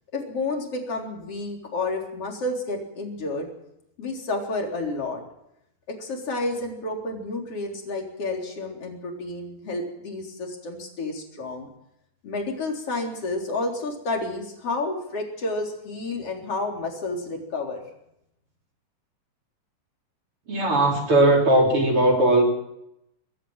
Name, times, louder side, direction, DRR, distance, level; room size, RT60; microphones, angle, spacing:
voice 1, 0.1-3.5 4.0-5.2 5.9-11.7 12.2-17.8, left 2 dB, 35° left, 1 dB, 4.4 m, -30 dB
voice 2, 20.5-22.4, right 1 dB, 30° right, 1 dB, 4.3 m, -18 dB
23.5 x 13.5 x 8.9 m, 0.83 s
omnidirectional pair, 4.9 m